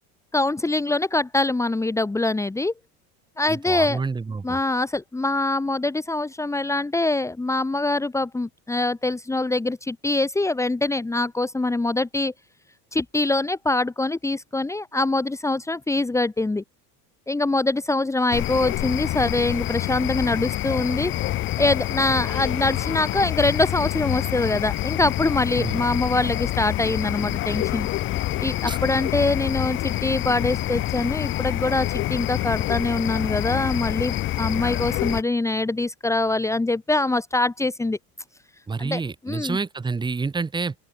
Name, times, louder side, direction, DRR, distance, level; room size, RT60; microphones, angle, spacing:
voice 1, 0.3-2.7 3.4-4.0 4.4-12.3 12.9-16.6 17.3-21.1 21.6-27.9 28.4-38.0 38.8-39.6, left 2 dB, 5° left, 2.9 m, -24 dB
voice 2, 3.5-4.6 25.6-25.8 28.7-28.8 38.7-40.7, right 4 dB, 10° right, 2.2 m, -28 dB
sound 1, 18.3-35.2, left 15 dB, 25° left, 0.8 m, -27 dB
open air
cardioid pair, 165°, 45 cm